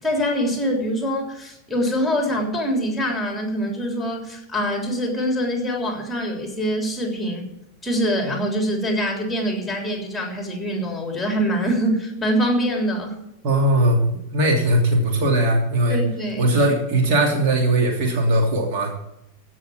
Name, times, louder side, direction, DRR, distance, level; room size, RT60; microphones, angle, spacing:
voice 1, 0.0-7.4 7.8-13.2 15.9-16.6, equal, 5° left, 1 dB, 3.3 m, -24 dB
voice 2, 13.4-14.0 14.3-16.0 16.4-18.9, right 1 dB, 40° right, 1 dB, 3.0 m, -19 dB
15.5 x 6.1 x 8.5 m, 0.81 s
figure-of-eight pair, 90°, 0 cm